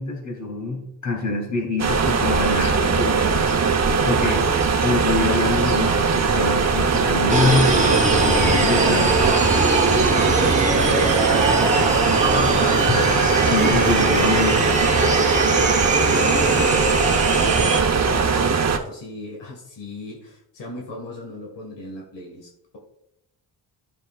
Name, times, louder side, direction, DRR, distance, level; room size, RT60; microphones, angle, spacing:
voice 1, 0.0-3.4 4.0-4.5 4.8-9.1 13.4-14.7, left 3 dB, 45° left, 0 dB, 3.0 m, -25 dB
sound 1, 1.8-18.8, right 5 dB, 40° right, 0.9 m, -20 dB
Alarm, 6.6-18.5, right 4 dB, 60° left, 2.8 m, -38 dB
sound 2, 7.3-17.8, right 2 dB, 15° right, 1.1 m, -21 dB
voice 2, 10.3-12.9 15.4-22.8, left 1 dB, 85° left, -1 dB, 1.9 m, -36 dB
13.0 x 6.6 x 2.4 m, 0.81 s
cardioid pair, 105°, 42 cm